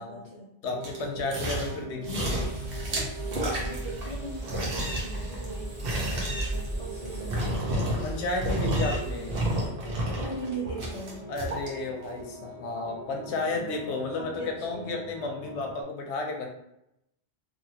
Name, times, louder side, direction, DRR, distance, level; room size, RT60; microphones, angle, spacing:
voice 1, 0.0-0.5 3.2-8.2 10.2-11.3 13.2-13.8 14.1-15.1, right 2 dB, 40° left, -7 dB, 0.6 m, -40 dB
voice 2, 0.6-2.5 8.0-9.3 11.3-16.5, left 3 dB, 90° left, 1 dB, 0.9 m, -33 dB
sound 1, 0.6-15.8, right 2 dB, 90° right, 1.0 m, -42 dB
sound 2, 0.8-1.8 2.0-4.1 4.4-8.2 8.4-9.0 9.3-11.7 12.2-12.3, right 1 dB, 60° right, 1.0 m, -31 dB
sound 3, 2.3-9.7, right 1 dB, 25° right, 0.9 m, -37 dB
2.8 x 2.8 x 2.8 m, 0.82 s
omnidirectional pair, 1.1 m